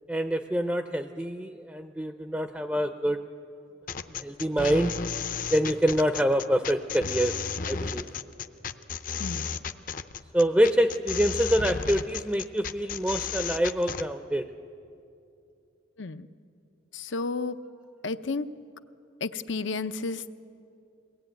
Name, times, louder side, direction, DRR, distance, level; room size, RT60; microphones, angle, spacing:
voice 1, 0.1-3.2 4.2-4.9 5.5-7.3 7.6-8.0 10.3-14.4, equal, 10° right, 7 dB, 0.5 m, -26 dB
sound 1, 3.9-14.1, left 6 dB, 45° left, 0.6 m, -33 dB
voice 2, 16.9-17.6 18.0-18.5 19.2-20.3, left 3 dB, 85° left, 11 dB, 0.7 m, -32 dB
23.0 x 18.0 x 9.1 m, 2.6 s
head